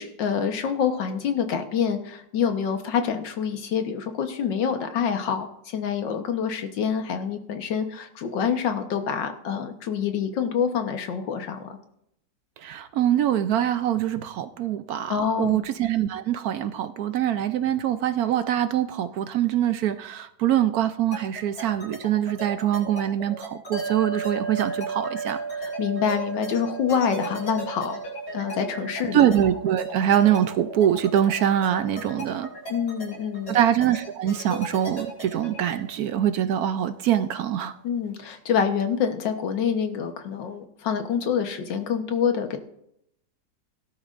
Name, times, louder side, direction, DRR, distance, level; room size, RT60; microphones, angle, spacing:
voice 1, 0.0-11.8 15.1-15.6 25.6-28.0 28.3-29.3 32.7-33.6 37.8-42.6, left 7 dB, 90° left, 6 dB, 1.8 m, -26 dB
voice 2, 12.6-25.4 29.1-32.5 33.5-37.7, right 10 dB, 70° right, 11 dB, 0.9 m, -24 dB
sound 1, 21.1-35.8, right 1 dB, 50° left, 5.8 m, -37 dB
sound 2, 23.7-36.2, right 4 dB, 25° right, 2.5 m, -37 dB
17.5 x 12.0 x 2.5 m, 0.77 s
omnidirectional pair, 1.9 m